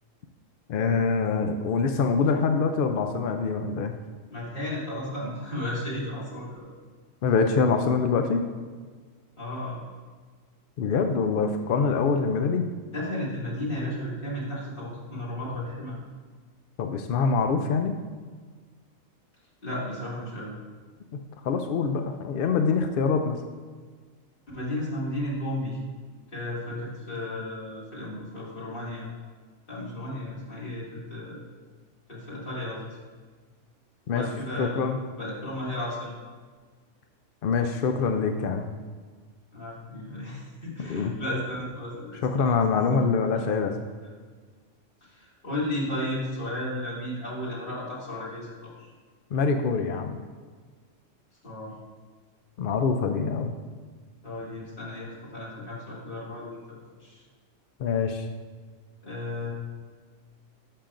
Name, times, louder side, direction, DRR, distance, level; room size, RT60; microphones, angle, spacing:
voice 1, 0.7-3.9 7.2-8.4 10.8-12.7 16.8-17.9 21.4-23.4 34.1-34.2 34.6-35.0 37.4-38.7 40.8-41.1 42.2-43.8 49.3-50.2 52.6-53.5 57.8-58.3, left 5 dB, 65° left, 6 dB, 0.5 m, -24 dB
voice 2, 4.3-6.7 9.4-9.9 12.9-16.0 19.6-20.5 24.5-25.8 26.3-29.1 29.7-31.4 32.1-33.0 34.1-36.2 39.5-42.4 43.3-43.4 45.0-48.9 51.4-51.8 54.2-57.2 59.0-59.5, left 1 dB, 45° left, -7 dB, 2.5 m, -34 dB
11.0 x 6.8 x 2.5 m, 1.5 s
omnidirectional pair, 1.3 m